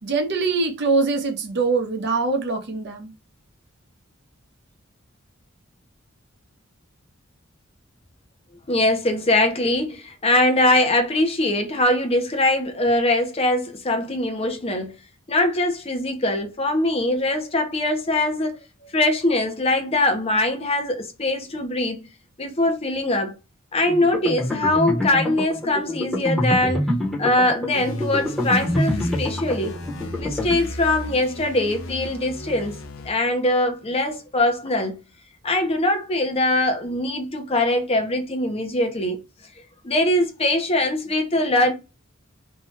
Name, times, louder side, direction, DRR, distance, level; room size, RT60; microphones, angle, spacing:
voice 1, 0.0-3.1, right 3 dB, 55° right, 0.6 m, -23 dB
voice 2, 8.7-14.9 15.3-18.6 18.9-22.1 22.4-23.4 23.7-26.8 27.2-29.8 30.2-35.0 35.4-39.2 39.8-41.7, left 1 dB, 30° left, 0.6 m, -22 dB
sound 1, 23.8-30.6, left 1 dB, ahead, 0.9 m, -26 dB
sound 2, 27.7-33.1, left 1 dB, 80° left, 0.6 m, -34 dB
2.7 x 2.2 x 3.1 m
head